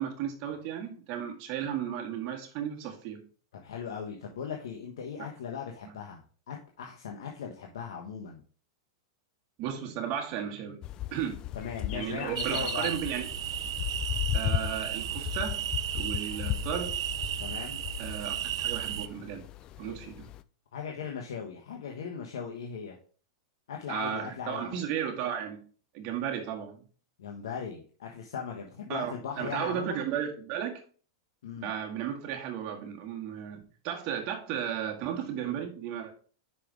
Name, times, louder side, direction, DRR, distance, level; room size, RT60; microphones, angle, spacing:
voice 1, 0.0-3.2 5.2-5.3 5.8-6.0 9.6-10.8 11.1-11.4 11.9-13.3 14.3-15.6 15.9-16.9 18.0-19.4 19.8-20.3 23.9-25.6 25.9-26.8 28.9-30.8 31.6-36.1, right 9 dB, 45° right, 1.8 m, -34 dB
voice 2, 3.5-8.4 11.5-12.9 17.4-17.8 19.8-20.0 20.7-23.0 23.7-24.8 27.2-30.0 31.4-31.7, left 7 dB, 80° left, 1.3 m, -38 dB
sound 1, 10.8-20.4, left 13 dB, 30° left, 0.4 m, -36 dB
sound 2, 12.4-19.1, right 10 dB, 80° right, 0.5 m, -34 dB
5.9 x 5.3 x 4.8 m
hypercardioid pair, 135°, 2 cm